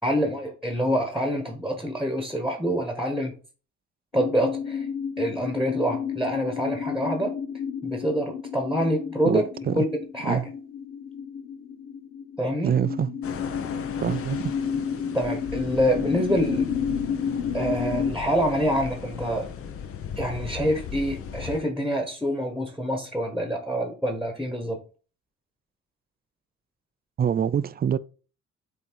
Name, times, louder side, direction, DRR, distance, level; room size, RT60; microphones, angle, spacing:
voice 1, 0.0-3.3 4.1-4.9 5.2-7.4 7.8-9.5 9.7-9.9 10.1-10.5 12.4-12.8 15.1-16.7 17.5-19.5 20.2-24.8, equal, ahead, 1.3 m, -26 dB
sound 1, 4.1-18.1, left 7 dB, 85° left, 1.0 m, -31 dB
voice 2, 9.3-9.8 10.2-10.5 12.6-13.1 14.0-14.5 27.2-28.0, right 8 dB, 30° right, 0.4 m, -25 dB
sound 2, 13.2-21.6, left 7 dB, 50° left, 0.8 m, -37 dB
7.8 x 2.8 x 4.6 m
cardioid pair, 90°, 30 cm